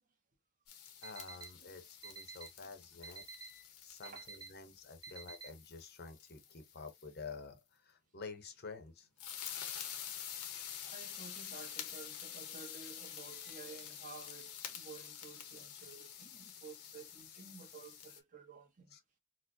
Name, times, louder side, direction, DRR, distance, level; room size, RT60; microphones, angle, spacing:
sound 1, 0.7-7.1 9.2-18.2, left 9 dB, 85° left, 0.8 m, -48 dB
voice 1, 1.0-9.1 13.4-13.6 18.9-19.0, left 4 dB, 45° left, 0.7 m, -50 dB
Alarm, 1.0-1.5 2.0-2.5 3.0-3.5 4.0-4.5 5.0-5.5, right 4 dB, 15° right, 0.5 m, -48 dB
voice 2, 10.9-18.9, right 4 dB, 35° right, 0.9 m, -53 dB
4.4 x 2.1 x 2.6 m
head